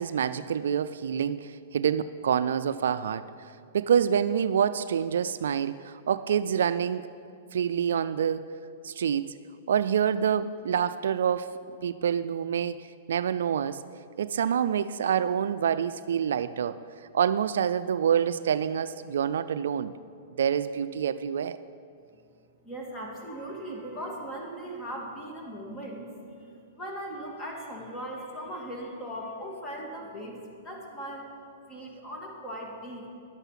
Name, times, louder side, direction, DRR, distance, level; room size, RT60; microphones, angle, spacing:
voice 1, 0.0-3.2 3.7-7.1 7.5-8.5 8.8-9.4 9.7-11.5 11.8-12.8 13.1-13.8 14.2-16.8 17.1-19.9 20.4-21.6, right 8 dB, 80° right, 14 dB, 0.3 m, -27 dB
voice 2, 22.6-26.1 26.4-30.4 30.6-31.3 31.7-33.1, right 1 dB, 15° left, -1 dB, 2.3 m, -38 dB
11.0 x 8.1 x 5.8 m, 2.4 s
hypercardioid pair, 130°, 0 cm